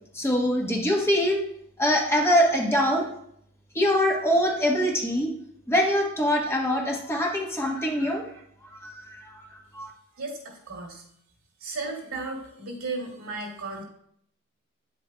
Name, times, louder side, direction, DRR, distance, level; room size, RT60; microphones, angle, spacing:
voice 1, 0.1-1.4 1.8-3.1 3.7-5.3 5.7-8.2 8.8-9.9, equal, 10° left, -1 dB, 1.1 m, -24 dB
voice 2, 10.2-11.0 11.6-13.8, right 3 dB, 85° right, -1 dB, 2.3 m, -35 dB
9.4 x 8.0 x 2.2 m, 0.70 s
head